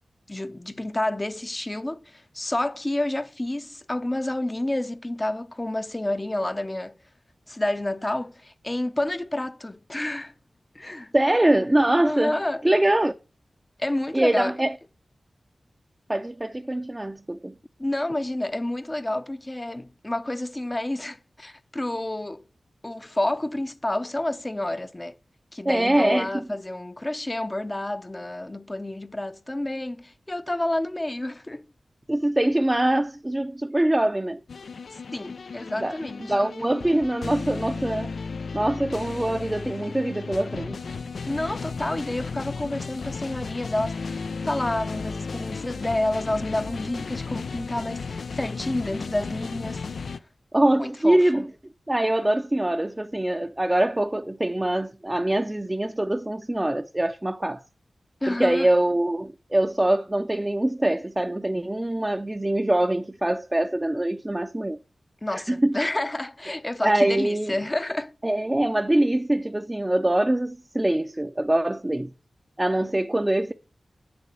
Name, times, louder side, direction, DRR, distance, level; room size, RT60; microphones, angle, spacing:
voice 1, 0.3-6.9 7.5-10.3 10.7-11.1 12.0-12.6 13.8-14.5 17.8-22.4 22.8-25.2 25.5-31.6 35.1-36.3 41.3-50.2 50.8-51.4 58.2-58.7 65.2-68.1, left 1 dB, 25° left, 0.6 m, -29 dB
voice 2, 11.1-12.4 12.6-13.1 14.1-14.7 16.1-17.6 25.6-26.3 32.1-34.4 35.7-36.0 36.3-38.1 38.5-40.8 50.5-51.5 51.9-57.6 58.3-64.8 65.3-65.8 66.8-67.5 68.2-72.1 72.6-73.5, right 1 dB, 20° right, 0.6 m, -23 dB
sound 1, 34.5-50.2, left 4 dB, 85° left, 0.5 m, -34 dB
7.5 x 6.9 x 7.7 m
cardioid pair, 55°, 0 cm